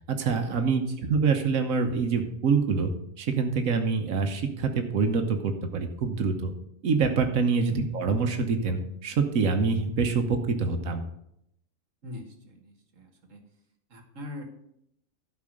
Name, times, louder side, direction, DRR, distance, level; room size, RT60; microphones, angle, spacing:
voice 1, 0.1-2.9 3.2-6.5 6.8-11.0, right 5 dB, 85° right, 6 dB, 1.4 m, -25 dB
voice 2, 12.0-13.4 13.9-14.4, left 2 dB, 70° right, 5 dB, 1.9 m, -42 dB
12.0 x 4.9 x 6.4 m, 0.76 s
omnidirectional pair, 1.4 m